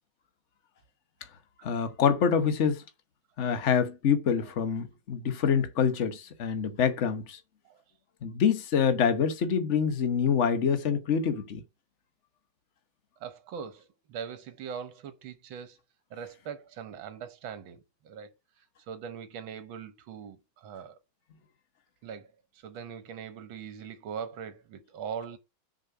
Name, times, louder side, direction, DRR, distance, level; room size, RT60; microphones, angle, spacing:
voice 1, 1.6-2.8 3.4-7.4 8.2-11.6, left 7 dB, 45° left, 1.2 m, -26 dB
voice 2, 13.2-15.8 16.1-18.3 18.6-21.0 22.0-25.4, right 7 dB, 75° right, 1.9 m, -41 dB
6.7 x 5.4 x 5.7 m
omnidirectional pair, 2.2 m